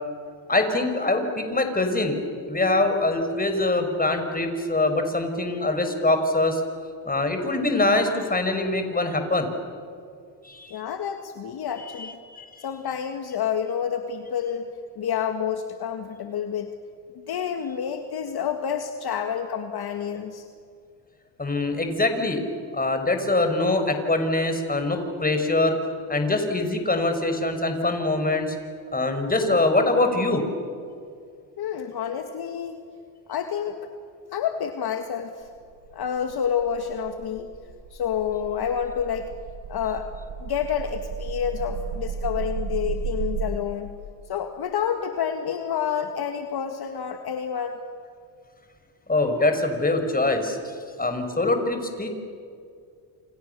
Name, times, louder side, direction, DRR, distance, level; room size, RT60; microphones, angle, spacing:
voice 1, 0.5-2.2 2.5-6.6 7.0-9.5 10.4-10.8 11.8-12.7 21.4-22.4 22.7-25.8 26.1-28.6 28.9-30.4 49.1-50.6 51.0-52.1, left 2 dB, 20° left, 6 dB, 5.7 m, -23 dB
voice 2, 10.7-12.2 12.6-14.7 15.0-16.7 17.1-20.4 31.6-32.8 33.3-33.9 34.3-35.5 35.9-37.5 37.9-39.3 39.7-40.1 40.4-43.9 44.3-47.8, left 8 dB, 50° left, 6 dB, 2.1 m, -29 dB
sound 1, 35.5-43.5, right 6 dB, 50° right, 5.1 m, -34 dB
29.5 x 27.5 x 7.0 m, 2.3 s
supercardioid pair, 70°, 48 cm